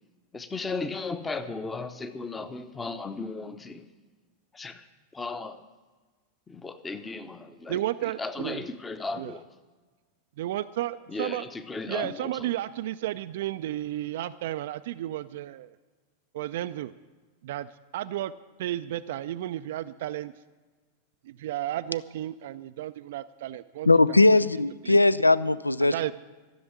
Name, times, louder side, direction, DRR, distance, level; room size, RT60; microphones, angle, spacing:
voice 1, 0.3-3.9 4.5-4.9 5.1-5.6 6.5-7.8 8.2-9.5 11.1-12.5, left 3 dB, 15° left, 10 dB, 0.8 m, -35 dB
voice 2, 7.7-8.6 9.2-9.4 10.4-11.4 11.9-15.7 16.3-16.9 17.4-18.3 18.6-20.3 21.3-23.9 24.8-25.0 25.8-26.1, right 13 dB, 55° right, 12 dB, 0.3 m, -33 dB
voice 3, 23.8-26.1, left 2 dB, 85° left, 18 dB, 0.4 m, -20 dB
14.0 x 7.0 x 9.9 m, 1.3 s
figure-of-eight pair, 90°, 0 cm